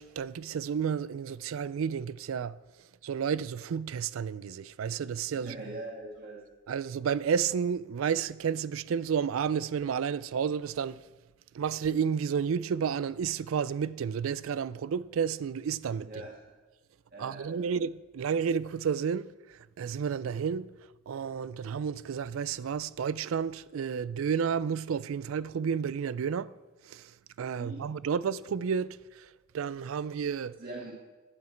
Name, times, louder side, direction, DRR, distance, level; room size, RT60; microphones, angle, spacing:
voice 1, 0.0-2.6 3.0-5.5 6.7-11.0 11.5-16.1 17.2-20.7 21.1-26.5 26.8-29.3 29.5-30.6, right 7 dB, 90° right, 0.4 m, -31 dB
voice 2, 5.3-6.4 16.0-16.3 17.1-17.7 27.5-27.9 30.6-30.9, right 1 dB, 50° right, 1.8 m, -42 dB
11.0 x 9.4 x 4.5 m
head